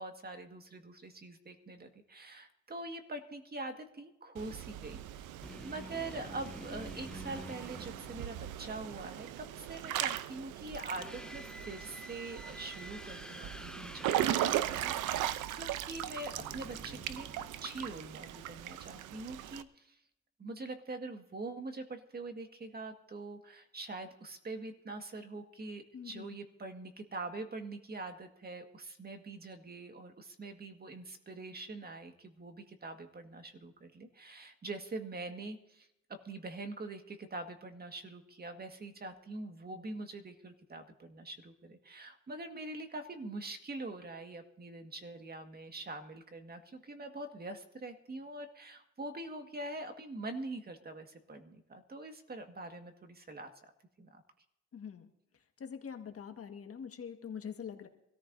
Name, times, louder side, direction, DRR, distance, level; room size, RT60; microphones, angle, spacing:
voice 1, 0.0-5.3 5.6-17.3 17.6-20.0 20.4-53.5 54.0-54.2, right 2 dB, 30° right, 6 dB, 1.7 m, -44 dB
Water / Splash splatter / Drip, 4.4-19.6, right 12 dB, 90° right, 0.7 m, -38 dB
sound 1, 5.4-8.7 10.7-18.0, equal, 5° left, 0.4 m, -49 dB
voice 2, 25.9-26.4 54.7-55.1 55.6-57.9, left 7 dB, 50° left, 6 dB, 1.6 m, -44 dB
24.5 x 14.0 x 2.7 m, 0.84 s
cardioid pair, 90°, 30 cm